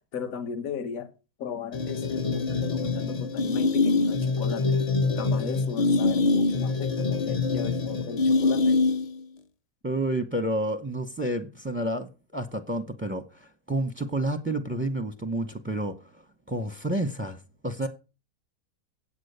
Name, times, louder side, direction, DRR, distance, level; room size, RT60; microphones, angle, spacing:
voice 1, 0.1-1.1 1.4-4.8 5.1-8.7, left 6 dB, 65° left, 1.6 m, -36 dB
sound 1, 1.7-9.2, left 3 dB, 45° left, 0.5 m, -25 dB
voice 2, 9.8-17.9, right 1 dB, 15° right, 0.5 m, -30 dB
8.5 x 8.3 x 6.6 m
omnidirectional pair, 1.6 m